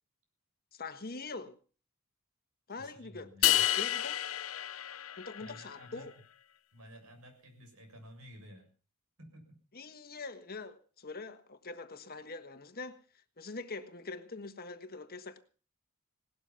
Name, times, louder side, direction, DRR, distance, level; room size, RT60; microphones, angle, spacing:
voice 1, 0.7-1.6 2.7-4.2 5.2-6.1 9.7-13.0 13.4-15.4, left 3 dB, 45° left, 1.4 m, -43 dB
voice 2, 2.8-3.6 5.4-6.1 6.7-8.7 9.2-9.6, equal, 75° right, 7.0 m, -53 dB
sound 1, 3.4-5.7, left 13 dB, 65° left, 0.7 m, -30 dB
18.5 x 12.5 x 5.7 m
head